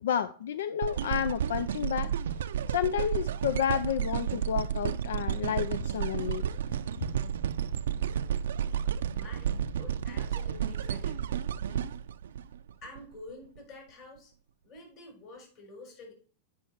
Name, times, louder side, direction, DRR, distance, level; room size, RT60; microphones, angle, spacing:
voice 1, 0.0-2.1 2.7-6.5, left 9 dB, 85° left, 0.4 m, -30 dB
sound 1, 0.8-13.0 13.6-13.7, right 9 dB, 90° right, 0.5 m, -32 dB
voice 2, 9.1-12.0 12.8-14.3 14.6-16.1, left 2 dB, 40° left, 4.3 m, -49 dB
7.9 x 5.5 x 4.4 m
supercardioid pair, 140°, 0 cm